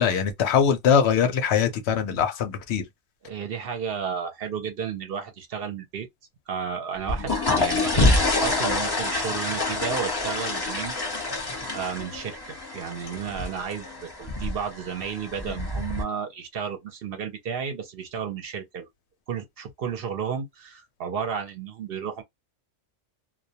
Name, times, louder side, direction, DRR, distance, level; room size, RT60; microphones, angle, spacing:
voice 1, 0.0-2.9, left 7 dB, 70° left, 0.8 m, -22 dB
voice 2, 3.2-6.1 6.5-11.0 11.7-18.9 19.3-22.2, right 7 dB, 60° right, 0.7 m, -33 dB
sound 1, 7.0-16.0, left 2 dB, 25° left, 0.7 m, -27 dB
2.2 x 2.1 x 2.6 m
omnidirectional pair, 1.2 m